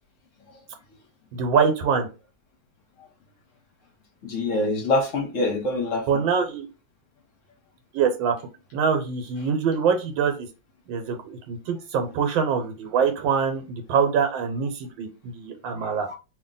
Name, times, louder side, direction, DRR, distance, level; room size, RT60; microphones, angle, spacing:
voice 1, 1.3-2.1 6.1-6.7 7.9-8.3 8.7-10.5 10.9-16.1, right 6 dB, 80° right, 1.5 m, -24 dB
voice 2, 4.2-6.0 15.8-16.1, left 2 dB, 55° left, 0.9 m, -25 dB
2.9 x 2.7 x 3.8 m
omnidirectional pair, 2.1 m